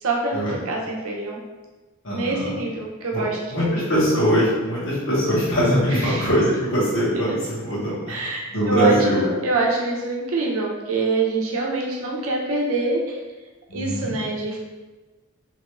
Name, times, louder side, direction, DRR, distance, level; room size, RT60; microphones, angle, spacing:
voice 1, 0.0-1.4 2.1-3.8 5.9-6.3 8.1-13.2 13.7-14.6, right 3 dB, 70° right, -2 dB, 0.6 m, -25 dB
voice 2, 2.0-2.5 3.1-3.2 3.5-8.2 8.5-9.2 13.7-14.1, equal, 60° left, -8 dB, 1.2 m, -21 dB
2.9 x 2.5 x 3.0 m, 1.2 s
head